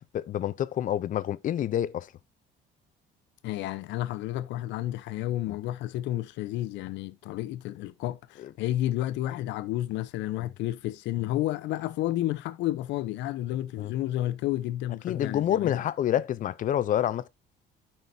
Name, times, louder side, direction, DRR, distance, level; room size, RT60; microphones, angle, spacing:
voice 1, 0.1-2.1 5.5-5.6 8.4-8.5 10.4-10.5 13.8-13.9 15.0-17.3, left 11 dB, 45° left, 0.6 m, -28 dB
voice 2, 3.4-15.8, left 14 dB, 75° left, 0.8 m, -31 dB
12.5 x 5.8 x 2.7 m
cardioid pair, 130°, 19 cm